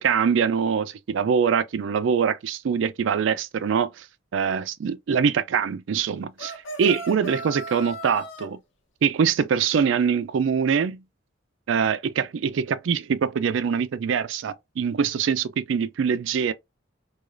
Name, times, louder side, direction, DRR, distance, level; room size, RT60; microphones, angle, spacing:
voice 1, 0.0-4.1 4.3-8.6 9.0-11.0 11.7-16.5, right 6 dB, 75° right, 0.4 m, -24 dB
sound 1, 6.4-8.5, right 1 dB, 75° left, 0.9 m, -36 dB
4.7 x 2.3 x 2.5 m
head